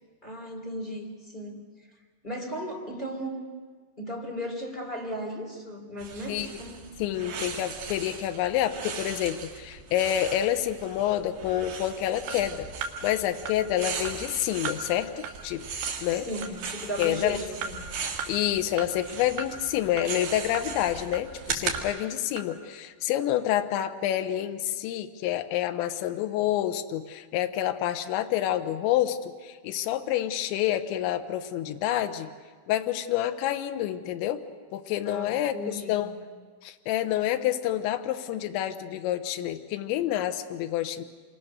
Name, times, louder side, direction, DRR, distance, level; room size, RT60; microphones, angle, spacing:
voice 1, 0.2-1.6 2.2-3.4 4.0-6.8 16.1-17.8 35.0-36.1, equal, 15° left, -1 dB, 2.2 m, -36 dB
sound 1, 6.0-21.8, right 5 dB, 55° right, 3.8 m, -38 dB
voice 2, 7.0-12.7 13.0-15.1 15.4-16.3 17.0-17.4 18.3-32.3 32.7-34.4 34.7-36.1 36.6-41.0, left 12 dB, 80° left, 7 dB, 3.2 m, -28 dB
sound 2, 12.3-12.4 12.8-12.9 13.5-13.6 14.1-14.2 14.7-14.8 15.2-15.3 15.8-15.9 16.4-16.5 17.0-17.1 17.6-17.7 18.2-18.3 18.8-18.9 19.4-19.5 20.0-20.1 20.5-20.7 21.1-21.2 21.7-21.8 22.4-22.5, right 5 dB, 75° right, 3.9 m, -36 dB
27.5 x 23.0 x 6.5 m, 1.5 s
omnidirectional pair, 5.4 m